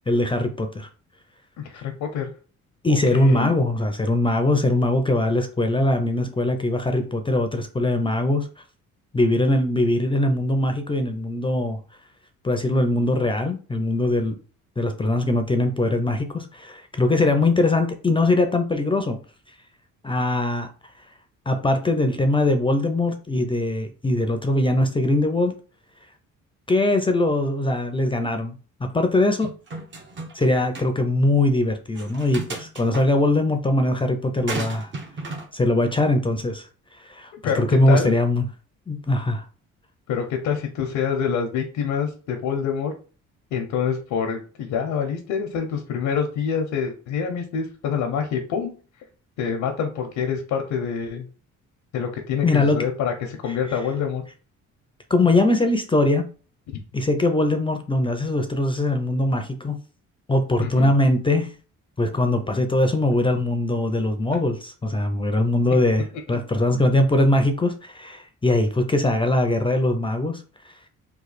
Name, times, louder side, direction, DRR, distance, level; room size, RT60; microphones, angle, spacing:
voice 1, 0.1-0.9 2.8-8.5 9.1-11.8 12.4-14.4 14.8-19.2 20.0-20.7 21.5-25.5 26.7-29.5 30.3-34.9 35.5-36.7 37.1-38.5 38.9-39.4 52.4-52.9 55.1-56.2 56.9-59.8 60.3-61.5 62.0-70.4, left 2 dB, 15° left, 6 dB, 0.5 m, -21 dB
voice 2, 1.6-2.3 2.9-3.5 37.4-38.1 40.1-42.9 43.5-48.7 49.4-51.3 51.9-54.2 60.6-60.9, left 7 dB, 90° left, 3 dB, 0.7 m, -26 dB
sound 1, 29.4-30.4 30.7-30.9 31.9-33.0 34.5-35.5, right 3 dB, 40° right, 0.8 m, -34 dB
3.1 x 2.3 x 4.1 m, 0.37 s
cardioid pair, 90°, 30 cm